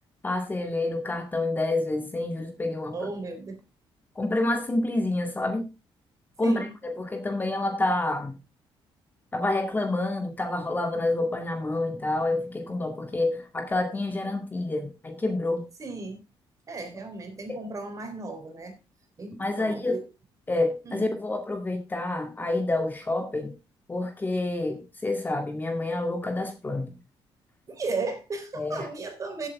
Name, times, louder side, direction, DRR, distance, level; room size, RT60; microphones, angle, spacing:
voice 1, 0.2-2.9 4.2-5.7 6.4-8.4 9.3-15.6 19.4-20.0 20.5-23.5 23.9-27.0 28.5-28.9, left 2 dB, 20° left, 2.1 m, -28 dB
voice 2, 2.9-3.6 6.4-6.7 15.8-16.2 16.7-18.8 19.2-20.0 20.8-21.1 27.7-29.5, right 3 dB, 35° right, 3.8 m, -35 dB
16.0 x 8.2 x 3.5 m
cardioid pair, 130°, 10 cm